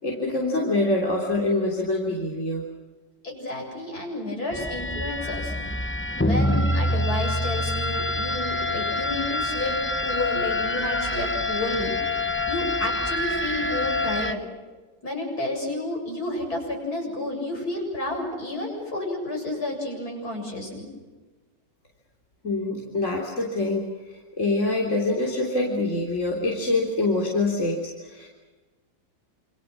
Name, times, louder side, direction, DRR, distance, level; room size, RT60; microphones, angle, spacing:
voice 1, 0.0-2.6 22.4-28.3, left 2 dB, 45° left, -2 dB, 3.9 m, -25 dB
voice 2, 3.2-5.5 6.2-9.8 10.0-11.9 12.5-14.4 15.0-20.9, left 1 dB, 60° left, 0 dB, 8.1 m, -31 dB
sound 1, 4.5-14.3, left 1 dB, 15° left, 0.4 m, -26 dB
28.0 x 27.5 x 6.2 m, 1.3 s
omnidirectional pair, 1.8 m